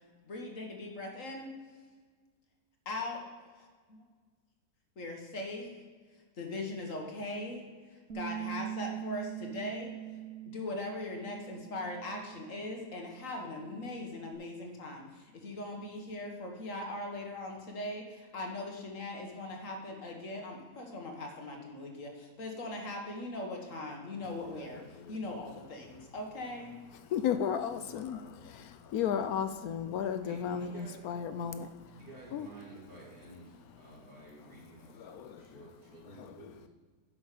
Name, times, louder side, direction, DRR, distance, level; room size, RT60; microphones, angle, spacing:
voice 1, 0.2-1.5 2.9-3.2 3.5-4.0 5.0-5.7 6.4-7.6 7.9-9.9 10.5-26.7, left 2 dB, 55° left, 1 dB, 1.8 m, -40 dB
Bass guitar, 8.1-14.3, right 13 dB, 60° right, 1.1 m, -43 dB
voice 2, 27.0-32.0 32.3-32.5 34.9-35.5 36.2-36.6, left 8 dB, 70° left, 10 dB, 1.0 m, -34 dB
voice 3, 30.2-31.3 32.0-36.7, right 2 dB, 85° right, -6 dB, 3.6 m, -52 dB
11.0 x 6.2 x 4.9 m, 1.5 s
omnidirectional pair, 1.7 m